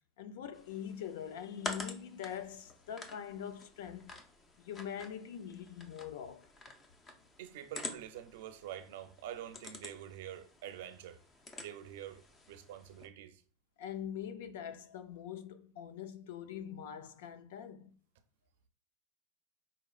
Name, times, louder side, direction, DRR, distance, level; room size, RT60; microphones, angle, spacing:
voice 1, 0.2-4.1 4.6-6.5 13.8-17.9, left 9 dB, 75° left, 0.5 m, -43 dB
sound 1, 0.5-13.1, left 3 dB, 20° left, 0.5 m, -49 dB
voice 2, 7.4-11.2 11.6-13.4, right 11 dB, 75° right, 0.5 m, -46 dB
5.0 x 2.9 x 2.4 m
supercardioid pair, 160°, 0 cm